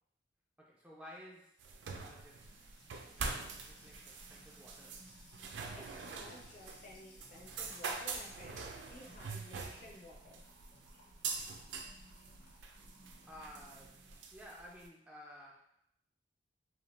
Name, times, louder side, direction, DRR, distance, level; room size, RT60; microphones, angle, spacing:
voice 1, 0.6-1.6 1.9-2.5 3.0-5.0 13.2-14.0 14.3-15.7, equal, 5° right, -4 dB, 0.3 m, -54 dB
sound 1, 1.6-14.9, right 4 dB, 90° right, 0.4 m, -44 dB
Music / Water tap faucet / Trickle dribble, 2.4-14.2, equal, 75° left, 0.9 m, -62 dB
voice 2, 5.7-10.4, left 1 dB, 45° left, -2 dB, 0.6 m, -54 dB
2.7 x 2.0 x 3.1 m, 0.71 s
head